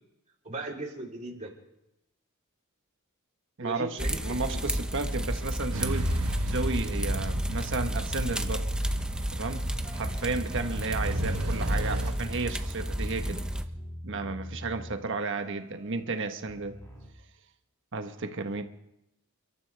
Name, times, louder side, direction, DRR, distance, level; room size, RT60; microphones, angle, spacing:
voice 1, 0.4-1.5 3.6-4.6, right 2 dB, 35° right, -2 dB, 3.5 m, -38 dB
voice 2, 3.6-8.7 9.3-9.6 9.9-13.4 14.0-16.8 17.9-18.6, right 3 dB, 60° right, 6 dB, 1.3 m, -33 dB
sound 1, 4.0-13.6, equal, 5° right, 0.7 m, -31 dB
sound 2, 5.7-12.1, right 1 dB, 85° right, 1.3 m, -35 dB
sound 3, 9.8-17.1, equal, 15° left, 3.5 m, -43 dB
30.0 x 12.5 x 3.4 m, 0.85 s
head